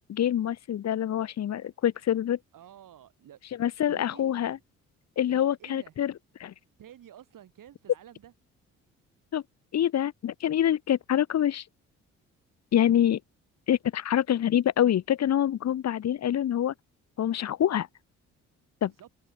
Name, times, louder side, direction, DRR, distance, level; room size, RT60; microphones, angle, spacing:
voice 1, 0.1-2.4 3.6-4.6 5.2-6.1 6.4-6.5 9.3-9.4 9.7-11.6 12.7-13.2 13.7-16.7 17.2-17.9 18.8-18.9, left 10 dB, 50° left, 0.9 m, -26 dB
voice 2, 2.5-3.4 3.9-4.6 5.3-5.9 6.8-8.3 18.8-19.1, right 10 dB, 65° right, 7.9 m, -51 dB
supercardioid pair, 55°, 34 cm